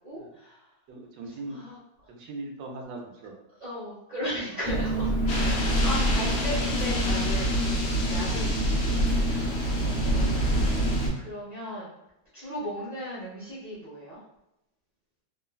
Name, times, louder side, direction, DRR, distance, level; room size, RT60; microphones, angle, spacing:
voice 1, 0.0-0.6 1.5-1.8 3.6-5.1 5.4-11.9 12.3-14.2, equal, 45° right, -10 dB, 0.8 m, -37 dB
voice 2, 0.9-1.6 2.1-3.4 4.4-4.5 5.2-5.3 5.7-5.8 9.6-9.9, right 2 dB, 80° right, 1 dB, 1.2 m, -40 dB
Engine, 4.7-11.1, right 1 dB, 45° left, 0.8 m, -26 dB
sound 1, 5.3-11.1, left 1 dB, 70° left, 1.0 m, -34 dB
3.1 x 2.1 x 2.2 m, 0.88 s
omnidirectional pair, 1.9 m